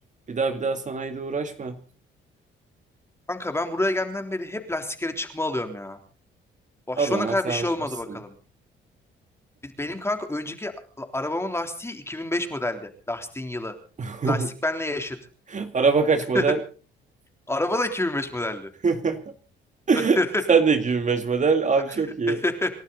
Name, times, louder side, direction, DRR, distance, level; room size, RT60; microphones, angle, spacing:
voice 1, 0.3-1.8 7.0-7.6 8.1-8.2 14.0-14.5 15.5-16.6 18.8-19.3 19.9-20.2 20.5-22.4, right 5 dB, 40° right, 7 dB, 2.1 m, -23 dB
voice 2, 3.3-6.0 6.9-8.4 9.6-13.7 14.2-15.2 16.3-16.4 17.5-18.7 19.9-20.4 22.3-22.7, left 1 dB, 15° left, 6 dB, 3.4 m, -28 dB
28.5 x 12.0 x 4.1 m, 0.37 s
cardioid pair, 90°, 20 cm